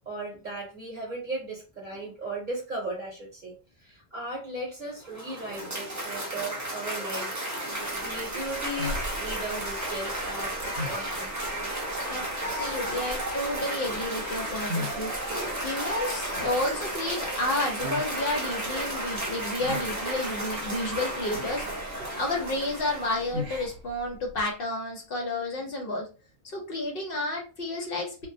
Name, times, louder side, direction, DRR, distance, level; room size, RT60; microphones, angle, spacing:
voice 1, 0.1-3.5 3.8-7.4 8.0-11.4 16.3-16.5, right 2 dB, 50° right, -3 dB, 0.9 m, -37 dB
Cheering / Applause, 4.9-23.5, right 1 dB, 20° right, 0.6 m, -33 dB
sound 1, 7.9-24.5, left 1 dB, 75° right, 0.9 m, -41 dB
voice 2, 12.1-15.2 15.6-21.6 22.2-26.1 26.4-28.3, left 2 dB, 60° left, 0 dB, 0.9 m, -31 dB
2.3 x 2.1 x 2.6 m, 0.33 s
omnidirectional pair, 1.1 m